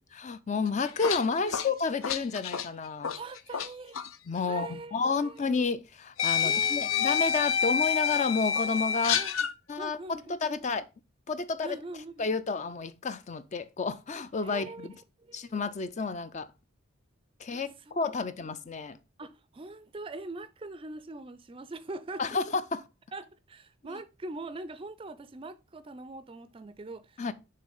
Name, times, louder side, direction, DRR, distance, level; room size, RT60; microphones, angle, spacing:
voice 1, 0.1-3.1 4.3-9.2 9.7-10.9 11.3-11.8 12.2-14.9 15.3-16.5 17.4-19.0 22.2-22.8 23.8-24.0 27.2-27.3, left 4 dB, 35° left, 0.4 m, -31 dB
sound 1, 0.7-3.7 3.9-4.1 5.3-5.4 6.2-9.5, left 7 dB, 80° left, 0.6 m, -28 dB
voice 2, 3.1-4.0 4.4-4.9 5.2-5.4 6.4-7.2 9.1-9.4 9.8-10.6 11.6-12.3 14.4-14.9 15.2-15.5 17.5-18.0 19.2-22.4 23.1-27.3, right 2 dB, 25° right, 0.4 m, -42 dB
6.7 x 3.2 x 5.3 m
head